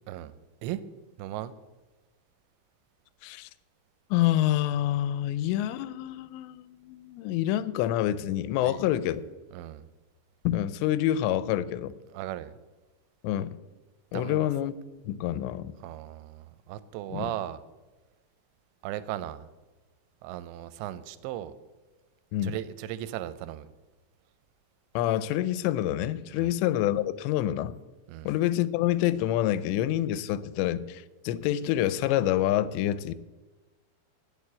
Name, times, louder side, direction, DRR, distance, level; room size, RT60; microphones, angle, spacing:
voice 1, 1.2-1.5 8.6-8.8 9.5-9.8 12.1-12.6 14.1-14.5 15.8-17.6 18.8-19.5 20.2-21.5 22.4-23.7 26.3-26.5 28.1-28.3, right 13 dB, 90° right, 14 dB, 2.9 m, -37 dB
voice 2, 4.1-9.2 10.4-12.0 13.2-13.6 14.1-14.7 15.1-15.7 17.1-17.3 22.3-22.6 25.0-27.7 28.3-33.1, left 13 dB, 85° left, 16 dB, 2.7 m, -27 dB
9.0 x 6.5 x 8.5 m, 1.2 s
omnidirectional pair, 5.0 m